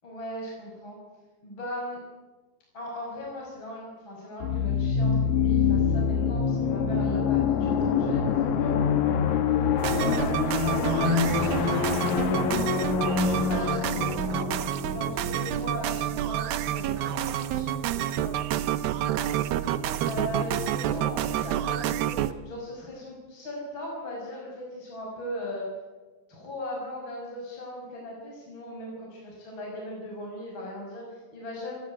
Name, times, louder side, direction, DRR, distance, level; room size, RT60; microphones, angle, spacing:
voice 1, 0.0-1.0 1.4-2.0 2.7-9.6 9.9-14.5 14.8-18.7 19.1-19.3 20.0-25.7 26.3-31.7, left 1 dB, 30° left, -3 dB, 6.2 m, -38 dB
sound 1, 4.4-15.9, left 6 dB, 60° left, 2.3 m, -25 dB
sound 2, 9.8-22.3, right 11 dB, 75° right, 2.6 m, -29 dB
28.0 x 14.0 x 9.7 m, 1.3 s
omnidirectional pair, 4.7 m